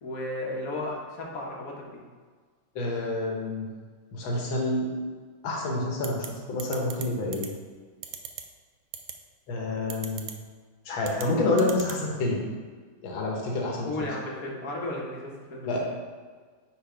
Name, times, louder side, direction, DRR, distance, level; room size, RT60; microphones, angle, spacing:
voice 1, 0.0-2.0 13.8-15.8, left 1 dB, 50° left, -1 dB, 1.3 m, -34 dB
voice 2, 2.8-3.7 4.1-4.9 5.4-7.5 9.5-10.3 10.9-12.5 13.0-13.9 15.7-15.9, left 2 dB, 80° left, -1 dB, 1.9 m, -28 dB
sound 1, 6.0-6.3 6.6-7.0 7.3-7.5 8.0-8.4 8.9-9.1 9.9-10.3 11.0-11.3 11.6-12.0, right 10 dB, 70° right, 1.1 m, -36 dB
5.6 x 4.0 x 5.0 m, 1.5 s
omnidirectional pair, 2.2 m